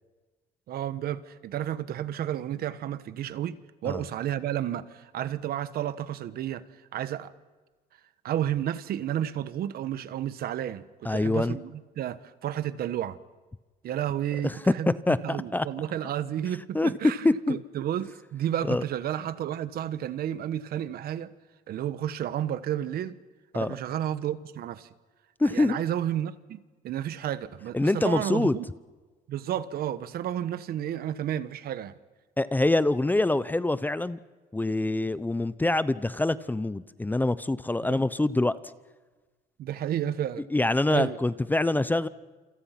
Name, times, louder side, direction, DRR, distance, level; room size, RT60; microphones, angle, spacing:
voice 1, 0.7-6.6 6.9-7.3 8.2-11.7 12.0-13.2 13.8-14.9 15.2-17.2 17.5-21.3 21.7-23.2 23.5-24.9 25.4-26.6 26.8-28.7 29.3-31.9 39.6-40.4 40.9-41.2, right 11 dB, 65° right, 1.3 m, -31 dB
voice 2, 11.0-11.6 14.4-15.7 16.7-16.9 17.2-17.6 18.6-18.8 23.5-23.7 25.4-25.8 27.7-28.6 32.4-34.2 34.5-38.6 40.5-42.1, left 2 dB, 10° left, 0.7 m, -25 dB
28.0 x 26.5 x 5.9 m
cardioid pair, 110°, 17 cm